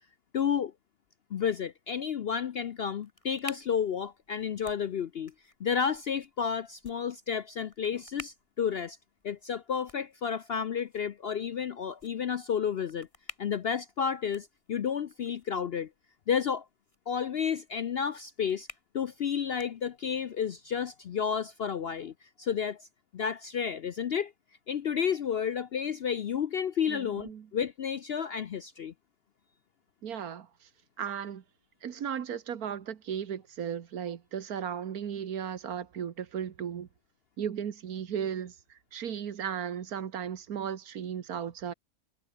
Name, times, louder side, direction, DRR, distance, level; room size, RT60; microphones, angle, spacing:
voice 1, 0.3-0.7 1.3-5.3 5.6-9.0 9.2-13.1 13.4-15.9 16.3-16.6 17.1-18.7 18.9-22.9 23.1-24.3 24.7-28.9, left 7 dB, 55° left, 0.7 m, -31 dB
sound 1, 2.6-20.3, left 1 dB, 20° left, 7.3 m, -53 dB
voice 2, 26.9-27.5 30.0-30.5 31.0-31.4 31.8-36.9 37.4-41.7, right 8 dB, 75° right, 1.7 m, -36 dB
omnidirectional pair, 1.6 m